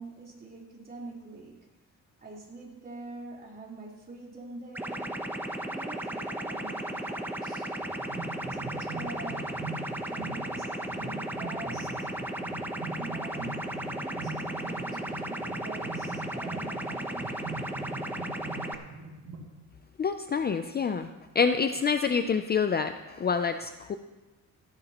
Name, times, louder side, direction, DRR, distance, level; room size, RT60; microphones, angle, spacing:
voice 1, 0.0-1.7 2.2-5.1 5.6-7.7 8.4-9.5 10.1-12.1 13.0-17.3, right 3 dB, 25° right, -4 dB, 3.8 m, -45 dB
sound 1, 4.7-18.7, right 1 dB, 5° right, 0.9 m, -35 dB
sound 2, 7.8-19.5, right 3 dB, 90° right, 4.1 m, -42 dB
voice 2, 20.0-21.1 21.3-24.0, left 5 dB, 30° left, 8 dB, 0.5 m, -27 dB
16.5 x 14.0 x 3.0 m, 1.1 s
cardioid pair, 115°, 33 cm